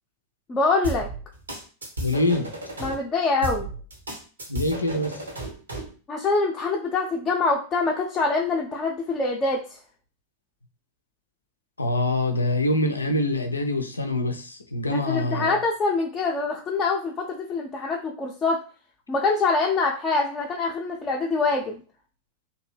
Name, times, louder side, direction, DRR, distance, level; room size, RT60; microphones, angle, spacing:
voice 1, 0.5-1.1 2.8-3.7 6.1-9.8 14.9-18.6 19.1-21.8, left 3 dB, 20° left, -1 dB, 0.5 m, -25 dB
sound 1, 0.8-2.9 3.4-5.9, right 2 dB, 75° right, 0.8 m, -34 dB
voice 2, 2.0-2.5 4.5-5.2 11.8-15.5, left 1 dB, 80° left, 6 dB, 0.4 m, -25 dB
2.7 x 2.1 x 3.2 m, 0.38 s
figure-of-eight pair, 90°, 0 cm